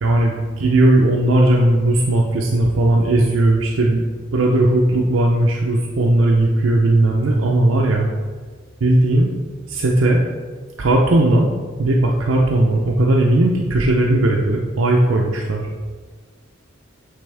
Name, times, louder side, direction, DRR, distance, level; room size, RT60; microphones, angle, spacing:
voice 1, 0.0-4.0 4.3-8.1 8.8-9.3 9.7-10.2 10.8-11.5 11.8-15.7, right 1 dB, 70° right, -1 dB, 0.6 m, -17 dB
8.8 x 3.4 x 3.3 m, 1.5 s
head